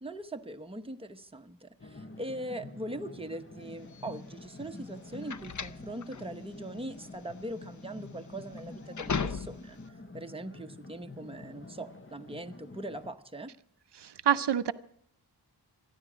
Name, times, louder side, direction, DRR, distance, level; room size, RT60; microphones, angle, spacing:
voice 1, 0.0-9.8 10.1-13.5, right 1 dB, 15° right, 6 dB, 0.9 m, -41 dB
sound 1, 1.8-13.1, left 2 dB, 30° left, 1.0 m, -47 dB
sound 2, 3.9-9.9, left 5 dB, 45° left, 0.6 m, -38 dB
voice 2, 14.0-14.7, right 9 dB, 80° right, 12 dB, 0.6 m, -27 dB
28.0 x 10.5 x 5.0 m, 0.68 s
wide cardioid pair, 80°, 41 cm